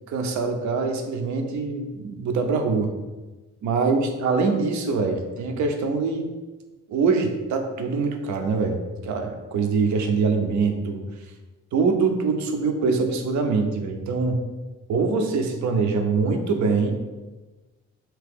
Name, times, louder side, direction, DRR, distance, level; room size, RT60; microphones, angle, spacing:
voice 1, 0.1-2.9 3.6-6.3 6.9-11.0 11.7-14.4 14.9-16.9, right 4 dB, 70° right, 5 dB, 0.6 m, -24 dB
2.9 x 2.8 x 3.5 m, 1.2 s
cardioid pair, 90°, 30 cm